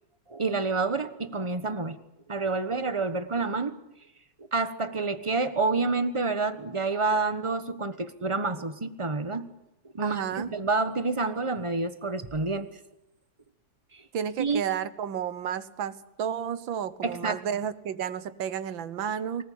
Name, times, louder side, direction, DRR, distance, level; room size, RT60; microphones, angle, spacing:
voice 1, 0.3-2.0 2.3-3.8 4.5-9.5 9.9-12.7 13.9-14.0 14.4-14.6 17.0-17.4, right 3 dB, 20° right, 10 dB, 1.1 m, -28 dB
voice 2, 10.0-10.5 14.1-19.4, right 8 dB, 85° right, 14 dB, 1.9 m, -32 dB
24.5 x 19.5 x 8.7 m, 0.87 s
omnidirectional pair, 2.1 m